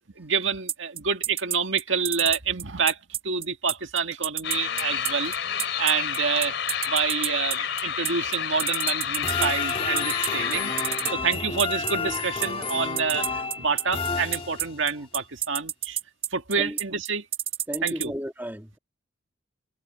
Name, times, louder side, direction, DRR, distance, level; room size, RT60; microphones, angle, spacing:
voice 1, 0.2-3.0 3.2-5.3 5.8-6.5 6.9-10.7 11.1-16.0 16.3-17.3 17.8-18.1, right 5 dB, 70° right, 1.9 m, -27 dB
sound 1, 0.7-18.1, right 10 dB, 30° right, 4.7 m, -29 dB
sound 2, 4.4-11.1, left 8 dB, 65° left, 4.0 m, -30 dB
sound 3, 9.2-14.9, left 4 dB, 30° left, 2.8 m, -31 dB
voice 2, 17.7-18.8, equal, 10° right, 2.5 m, -34 dB
head